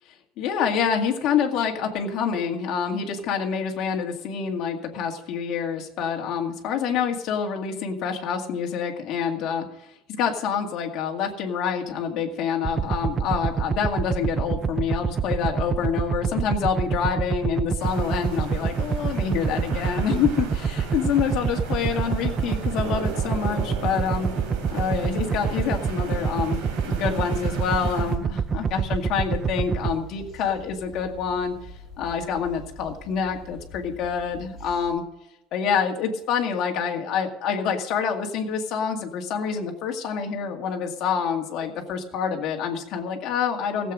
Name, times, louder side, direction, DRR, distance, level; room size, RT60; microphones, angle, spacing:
voice 1, 0.4-9.7 10.1-24.3 24.7-31.5 32.0-35.0 35.5-43.9, left 7 dB, 45° left, 2 dB, 2.0 m, -27 dB
sound 1, 12.6-29.9, right 6 dB, 20° right, 0.4 m, -26 dB
sound 2, 17.8-28.2, right 3 dB, 70° right, 3.5 m, -37 dB
sound 3, 27.4-34.9, equal, 10° left, 6.4 m, -45 dB
15.5 x 7.8 x 6.2 m, 0.87 s
cardioid pair, 170°, 0 cm